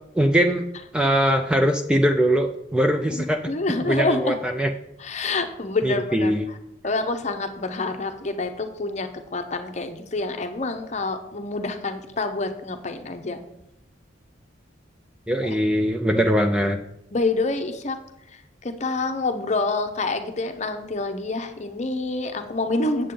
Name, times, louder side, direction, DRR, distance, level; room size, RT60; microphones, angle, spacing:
voice 1, 0.2-0.7 0.9-3.4 3.8-4.7 5.8-6.5 15.3-16.8, equal, 5° right, 5 dB, 0.3 m, -21 dB
voice 2, 3.1-4.4 5.0-6.3 6.8-13.4 17.1-18.0 18.3-23.1, left 3 dB, 35° left, 7 dB, 0.7 m, -27 dB
8.4 x 7.5 x 3.8 m, 0.84 s
head